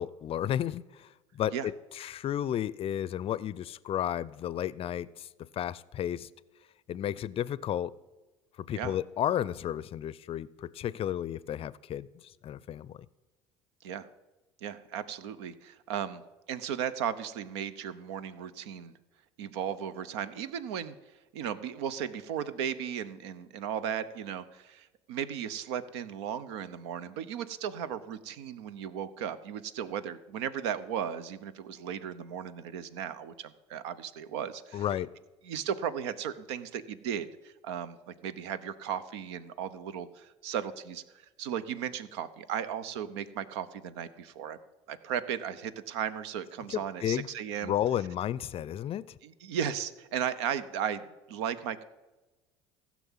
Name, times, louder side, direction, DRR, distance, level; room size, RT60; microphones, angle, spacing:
voice 1, 0.0-6.3 6.9-7.9 8.6-13.0 34.7-35.2 46.7-47.3 47.6-49.2, left 11 dB, 40° left, 0.5 m, -33 dB
voice 2, 14.6-16.2 16.5-18.9 19.4-21.0 21.3-34.8 35.4-44.6 44.9-47.7 49.2-51.8, right 8 dB, 75° right, 0.8 m, -36 dB
15.0 x 6.1 x 7.3 m
hypercardioid pair, 70°, 14 cm